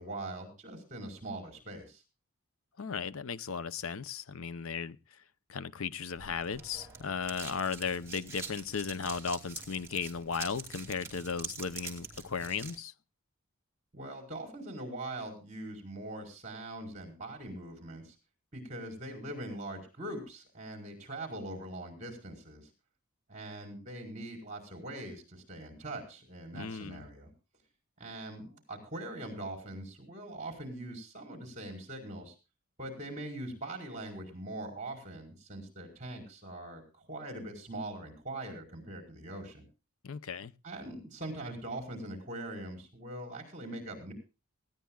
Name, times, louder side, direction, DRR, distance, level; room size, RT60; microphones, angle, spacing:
voice 1, 0.0-2.0 13.9-18.1 18.5-22.7 23.3-27.3 28.0-32.3 32.8-39.6 40.6-44.1, right 1 dB, 35° right, 4.8 m, -42 dB
voice 2, 2.8-5.0 5.5-12.9 26.5-27.1 40.0-40.5, left 6 dB, 70° left, 0.7 m, -36 dB
sound 1, 6.2-12.8, right 5 dB, 10° right, 2.5 m, -45 dB
19.5 x 16.0 x 2.3 m
head